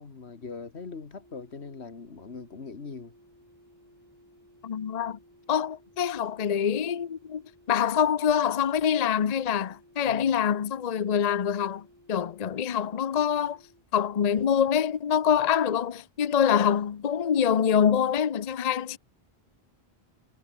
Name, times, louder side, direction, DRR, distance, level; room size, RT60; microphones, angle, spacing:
voice 1, 0.0-3.1 10.1-10.4, left 4 dB, 85° left, 2.1 m, -41 dB
sound 1, 1.1-13.9, equal, 15° left, 8.0 m, -58 dB
voice 2, 4.6-5.2 5.5-7.4 7.7-13.6 13.9-19.0, left 8 dB, 45° left, 0.7 m, -25 dB
omnidirectional pair, 1.1 m